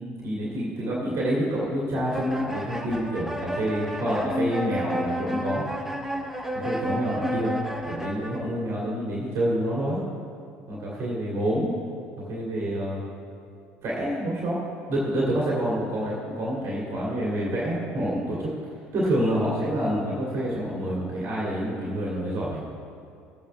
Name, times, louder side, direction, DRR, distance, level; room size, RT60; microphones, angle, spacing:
voice 1, 0.0-5.6 6.5-7.6 7.9-10.0 10.7-11.7 12.3-13.0 13.8-14.6 14.9-18.5 18.9-22.7, right 1 dB, 45° right, -5 dB, 2.3 m, -27 dB
sound 1, 2.1-8.4, equal, 5° right, 1.1 m, -31 dB
16.5 x 8.6 x 3.3 m, 2.5 s
figure-of-eight pair, 60°, 6 cm